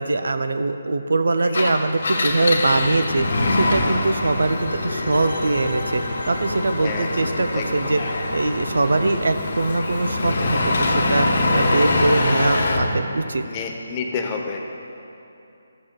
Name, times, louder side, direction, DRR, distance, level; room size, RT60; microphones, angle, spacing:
voice 1, 0.0-8.0 8.3-11.3 11.5-13.4, right 2 dB, 75° right, 8 dB, 0.5 m, -22 dB
Engine, 1.4-12.9, left 2 dB, 60° left, 1.0 m, -24 dB
sound 1, 2.3-8.4, right 2 dB, 15° right, 2.0 m, -41 dB
sound 2, 4.5-10.0 10.2-10.3, left 1 dB, 85° left, 1.4 m, -37 dB
voice 2, 6.8-7.9 13.4-14.6, left 5 dB, 25° left, 2 dB, 0.7 m, -30 dB
13.0 x 7.2 x 2.3 m, 2.8 s
figure-of-eight pair, 155°, 0 cm